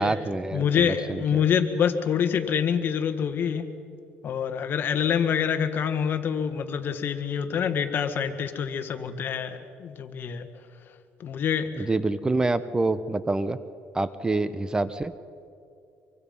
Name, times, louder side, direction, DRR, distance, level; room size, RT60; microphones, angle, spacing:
voice 1, 0.0-1.4 11.8-13.6 13.9-15.1, right 2 dB, 15° right, 14 dB, 0.7 m, -27 dB
voice 2, 0.5-3.7 4.2-10.4 11.2-11.9, left 7 dB, 50° left, 8 dB, 1.7 m, -26 dB
25.0 x 24.0 x 5.5 m, 2.4 s
cardioid pair, 105°, 5 cm